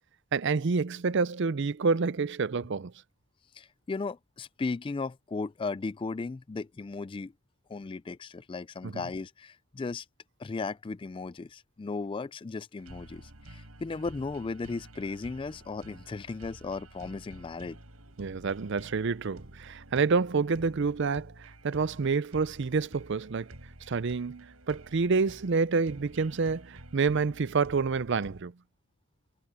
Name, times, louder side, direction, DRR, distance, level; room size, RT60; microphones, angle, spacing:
voice 1, 0.3-2.9 8.8-8.9 18.2-23.5 23.9-28.5, right 4 dB, 55° right, 0.5 m, -28 dB
voice 2, 3.5-7.3 7.7-10.1 10.4-17.8, left 4 dB, 25° left, 0.3 m, -36 dB
sound 1, 12.8-28.4, right 1 dB, 80° right, 7.1 m, -50 dB
head